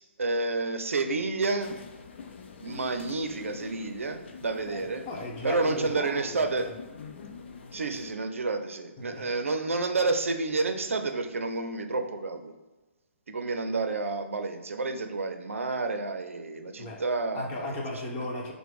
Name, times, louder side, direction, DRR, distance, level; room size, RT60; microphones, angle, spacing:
voice 1, 0.0-1.7 2.6-5.0 5.4-6.7 7.7-12.5 13.3-17.8 18.2-18.3, right 3 dB, 80° right, 7 dB, 0.5 m, -30 dB
sound 1, 1.6-8.1, left 5 dB, 55° left, 0.6 m, -45 dB
voice 2, 4.7-6.7 9.0-9.4 16.8-17.0 17.3-18.5, left 2 dB, 30° left, -1 dB, 1.1 m, -36 dB
4.8 x 2.2 x 4.8 m, 1.2 s
hypercardioid pair, 140°, 7 cm